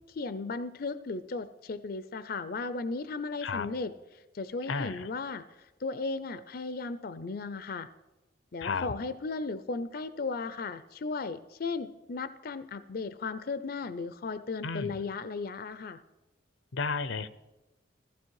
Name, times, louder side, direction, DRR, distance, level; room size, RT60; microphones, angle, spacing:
voice 1, 0.1-5.4 5.8-7.9 8.5-16.0, left 4 dB, 50° left, 14 dB, 0.5 m, -36 dB
voice 2, 4.7-5.1 8.6-8.9 14.6-14.9 16.7-17.3, left 4 dB, 90° left, 15 dB, 0.8 m, -32 dB
15.0 x 14.5 x 4.7 m, 1.0 s
head